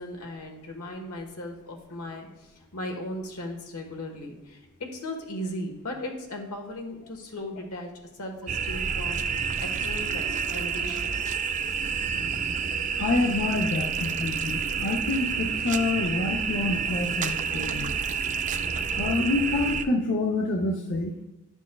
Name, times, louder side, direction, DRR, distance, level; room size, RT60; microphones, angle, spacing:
voice 1, 0.0-4.6 4.9-9.2 9.6-11.2, left 1 dB, 85° left, 2 dB, 1.3 m, -37 dB
sound 1, 8.5-19.8, right 6 dB, 35° right, 0.3 m, -29 dB
voice 2, 13.0-17.9 19.0-21.1, left 3 dB, 55° left, 1 dB, 0.6 m, -27 dB
10.5 x 6.1 x 2.3 m, 0.98 s
head